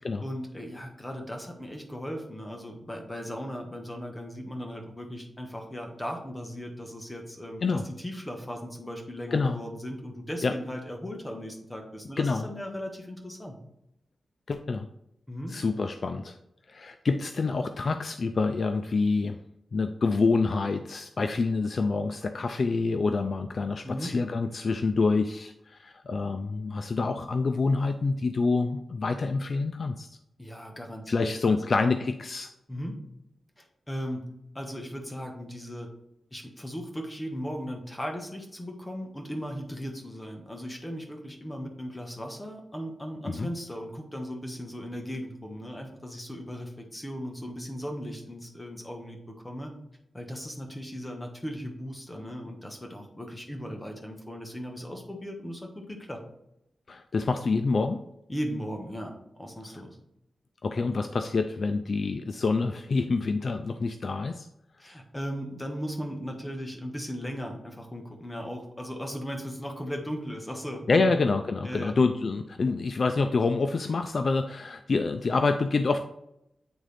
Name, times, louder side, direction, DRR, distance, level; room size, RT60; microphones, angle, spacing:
voice 1, 0.2-13.6 15.3-15.6 23.8-24.1 30.4-31.7 32.7-33.0 33.6-35.9 36.3-49.7 50.1-56.2 58.3-60.0 64.8-71.0 71.6-71.9, equal, 15° left, 2 dB, 1.4 m, -37 dB
voice 2, 12.2-12.5 14.5-14.9 15.5-16.4 16.7-19.4 19.7-30.1 31.1-32.5 43.3-43.5 56.9-58.0 60.6-64.5 70.9-76.0, left 4 dB, 55° left, 8 dB, 0.4 m, -27 dB
8.9 x 3.7 x 3.4 m, 0.81 s
wide cardioid pair, 90°, 0 cm